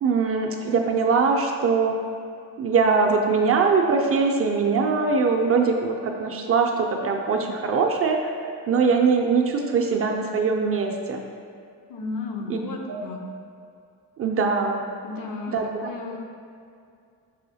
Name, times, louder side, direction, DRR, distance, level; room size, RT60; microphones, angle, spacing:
voice 1, 0.0-2.0 2.6-8.3 8.7-11.2 12.5-12.6 12.9-13.0 14.2-14.8 15.5-15.6, right 4 dB, 40° right, 2 dB, 0.4 m, -22 dB
voice 2, 11.9-13.2 15.0-16.2, left 3 dB, 60° left, 2 dB, 0.7 m, -34 dB
5.5 x 3.0 x 2.7 m, 2.3 s
supercardioid pair, 75°, 38 cm